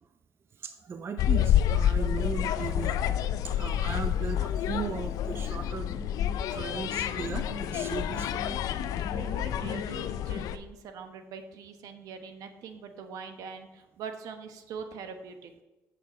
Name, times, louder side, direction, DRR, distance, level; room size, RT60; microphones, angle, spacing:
voice 1, 0.5-6.2 6.5-8.9, right 6 dB, 40° right, 8 dB, 0.6 m, -38 dB
sound 1, 1.2-10.6, left 10 dB, 75° left, 0.5 m, -29 dB
sound 2, 4.0-10.1, equal, 5° right, 0.9 m, -44 dB
voice 2, 9.1-15.5, right 5 dB, 75° right, 7 dB, 1.0 m, -43 dB
8.0 x 6.6 x 4.2 m, 1.1 s
cardioid pair, 90°, 6 cm